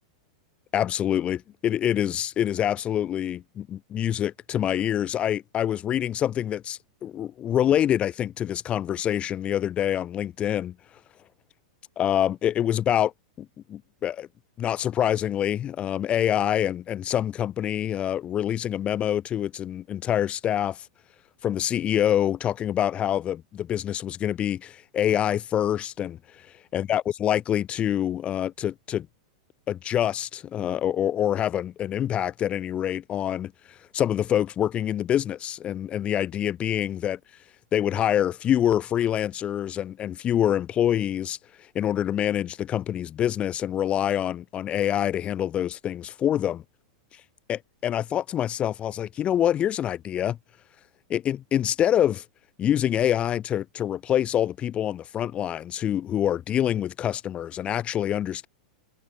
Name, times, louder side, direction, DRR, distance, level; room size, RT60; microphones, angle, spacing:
voice 1, 0.7-10.7 12.0-13.1 13.4-14.3 14.6-20.8 21.4-26.2 26.7-29.1 29.7-33.5 33.9-37.2 37.7-41.4 41.7-46.6 47.5-50.4 51.1-52.2 52.6-58.5, left 10 dB, 30° left, 5.5 m, -26 dB
hypercardioid pair, 120°, 4 cm